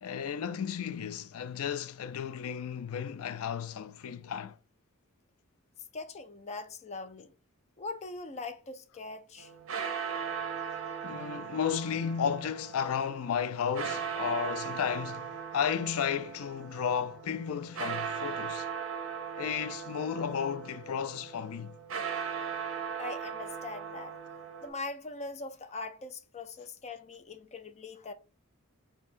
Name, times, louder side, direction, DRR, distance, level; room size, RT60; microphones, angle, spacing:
voice 1, 0.0-4.6 11.0-18.7 19.4-21.8, left 7 dB, 90° left, 0.4 m, -33 dB
voice 2, 5.9-7.3 7.8-9.5 23.0-24.2 24.6-28.1, left 3 dB, 30° left, 0.5 m, -41 dB
sound 1, 9.4-24.7, right 7 dB, 65° right, 0.6 m, -38 dB
4.4 x 2.3 x 2.4 m
head